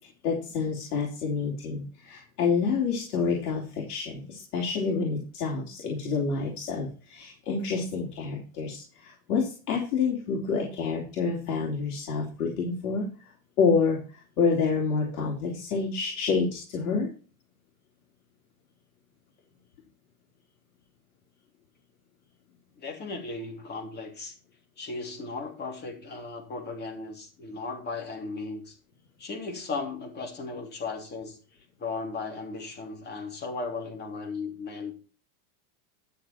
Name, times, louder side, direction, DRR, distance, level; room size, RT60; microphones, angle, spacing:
voice 1, 0.2-17.1, left 5 dB, 80° left, -2 dB, 3.6 m, -28 dB
voice 2, 22.8-24.3 24.8-28.8 29.2-31.4 31.8-34.9, left 3 dB, 25° left, 3 dB, 3.0 m, -36 dB
11.5 x 6.8 x 4.4 m, 0.36 s
supercardioid pair, 150°, 44 cm